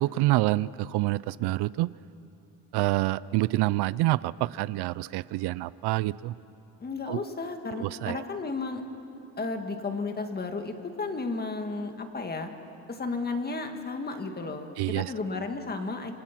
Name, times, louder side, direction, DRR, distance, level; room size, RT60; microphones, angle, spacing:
voice 1, 0.0-1.9 2.7-6.3 7.1-7.2 7.7-8.2 14.8-15.1, right 18 dB, 75° right, 19 dB, 0.5 m, -27 dB
voice 2, 6.8-8.8 9.4-12.5 12.9-16.1, left 3 dB, 25° left, 6 dB, 1.8 m, -33 dB
28.5 x 26.0 x 5.9 m, 2.8 s
cardioid pair, 150°, 40 cm